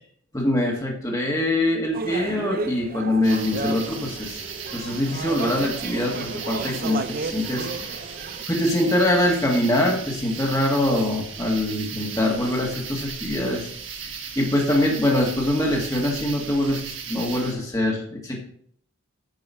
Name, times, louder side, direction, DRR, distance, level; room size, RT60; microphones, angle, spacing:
voice 1, 0.3-8.0 8.5-13.7 14.0-18.4, left 1 dB, 15° left, -1 dB, 1.8 m, -24 dB
sound 1, 1.9-8.4, right 3 dB, 40° right, 0.6 m, -33 dB
sound 2, 3.2-17.5, right 6 dB, 60° right, 1.5 m, -36 dB
9.4 x 5.4 x 5.6 m, 0.62 s
head